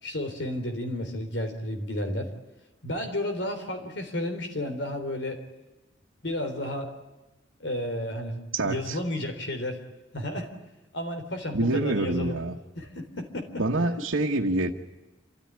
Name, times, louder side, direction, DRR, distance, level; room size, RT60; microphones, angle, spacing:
voice 1, 0.0-2.3 2.8-5.4 6.2-6.9 7.6-9.8 10.1-10.5 10.9-12.4 12.8-13.5, left 1 dB, 70° left, 6 dB, 3.9 m, -32 dB
voice 2, 8.5-9.0 11.5-12.5 13.6-14.7, right 2 dB, 85° right, -1 dB, 1.5 m, -26 dB
28.0 x 14.0 x 9.9 m, 1.1 s
head